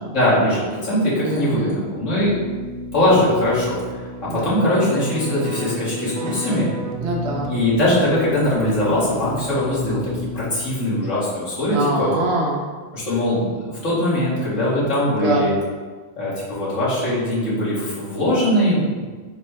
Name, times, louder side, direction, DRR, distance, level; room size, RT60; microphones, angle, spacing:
voice 1, 0.1-2.3 2.9-3.8 4.2-6.7 7.5-12.1 12.9-15.5 16.2-19.0, left 1 dB, 75° left, -9 dB, 1.7 m, -21 dB
voice 2, 1.2-1.8 4.3-4.6 7.0-7.5 11.7-12.6 15.1-15.7, right 2 dB, 65° right, -1 dB, 0.8 m, -24 dB
Keyboard (musical), 2.1-10.8, equal, 90° right, 1.0 m, -32 dB
4.1 x 2.1 x 4.4 m, 1.4 s
omnidirectional pair, 1.3 m